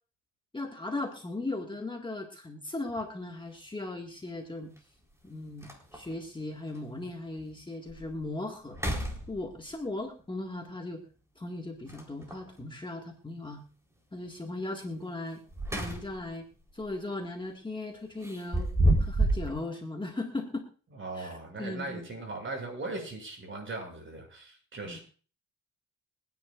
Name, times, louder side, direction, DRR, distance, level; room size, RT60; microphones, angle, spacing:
voice 1, 0.5-4.7 5.2-8.8 9.3-11.0 11.4-13.6 14.1-15.4 15.7-16.5 16.7-18.7 19.0-20.7 21.1-21.3 21.6-22.1 24.8-25.0, left 2 dB, 15° left, 2 dB, 1.8 m, -37 dB
sound 1, 2.9-3.0 4.8-4.9 5.3-5.4 5.6-6.2 6.7-6.8 7.4-7.5 7.9-8.2 8.7-9.8 11.9-12.5 15.3-16.3 16.7-16.9 18.2-19.5, right 1 dB, 10° right, 3.9 m, -29 dB
voice 2, 20.9-25.0, right 2 dB, 40° right, 1 dB, 6.9 m, -39 dB
26.0 x 9.9 x 2.5 m, 0.39 s
cardioid pair, 90°, 30 cm